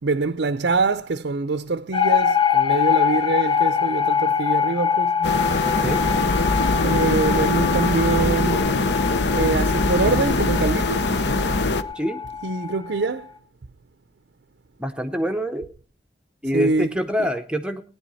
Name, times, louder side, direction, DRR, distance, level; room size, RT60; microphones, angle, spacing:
voice 1, 0.0-5.2 6.5-8.7 9.3-11.0 12.4-13.3 16.5-16.9, right 3 dB, 70° right, 0.6 m, -24 dB
sound 1, 1.9-13.1, left 7 dB, 30° left, 0.9 m, -24 dB
sound 2, 5.2-11.8, left 3 dB, 65° left, 0.8 m, -22 dB
Wind instrument woodwind instrument, 5.2-8.6, left 2 dB, 50° left, 1.6 m, -31 dB
voice 2, 5.6-6.0 11.9-12.2 14.8-15.7 16.4-17.8, equal, 5° right, 0.7 m, -26 dB
18.5 x 10.5 x 4.0 m
head